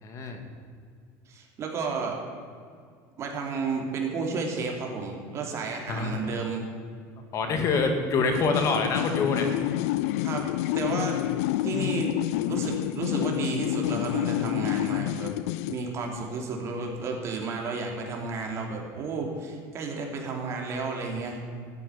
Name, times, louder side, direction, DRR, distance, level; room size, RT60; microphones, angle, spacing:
voice 1, 0.0-0.4 5.9-6.3 7.3-9.5, left 4 dB, 40° left, 5 dB, 2.0 m, -26 dB
voice 2, 1.3-2.2 3.2-6.7 10.2-10.5 10.7-11.2 11.6-12.2 12.5-15.3 15.6-21.4, right 4 dB, 40° right, 1 dB, 3.1 m, -32 dB
sound 1, 8.3-15.8, left 15 dB, 85° left, 0.5 m, -28 dB
13.5 x 9.4 x 9.9 m, 2.2 s
cardioid pair, 140°, 8 cm